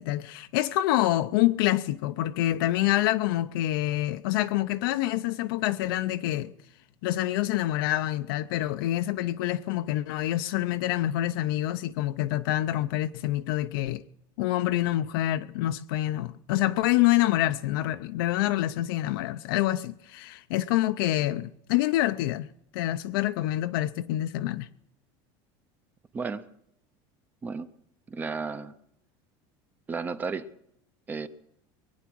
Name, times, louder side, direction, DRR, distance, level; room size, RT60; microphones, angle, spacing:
voice 1, 0.0-6.5 7.0-14.0 14.4-24.7, left 15 dB, 80° left, 0.6 m, -26 dB
voice 2, 28.1-28.7 29.9-30.5 31.1-31.3, right 5 dB, 15° right, 0.5 m, -33 dB
22.5 x 9.4 x 6.1 m
cardioid pair, 170°, 11 cm